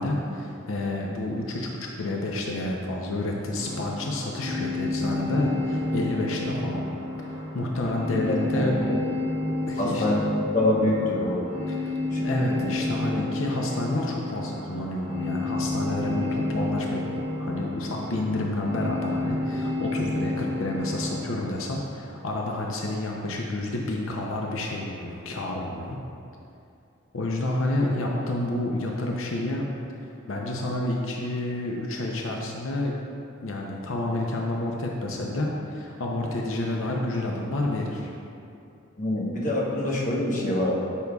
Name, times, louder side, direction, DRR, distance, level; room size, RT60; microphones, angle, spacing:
voice 1, 0.0-6.8 7.2-8.8 9.7-10.2 11.7-11.9 12.2-17.1 17.4-26.0 27.1-29.7 30.0-33.0 33.4-38.1, left 1 dB, 75° left, -1 dB, 0.7 m, -29 dB
sound 1, 3.6-21.5, left 2 dB, 35° right, 1.5 m, -30 dB
voice 2, 8.1-8.7 9.8-10.2 10.5-11.5 12.1-12.3 12.6-12.7 39.0-40.7, left 1 dB, 40° left, -4 dB, 1.1 m, -25 dB
12.5 x 5.4 x 2.3 m, 2.6 s
head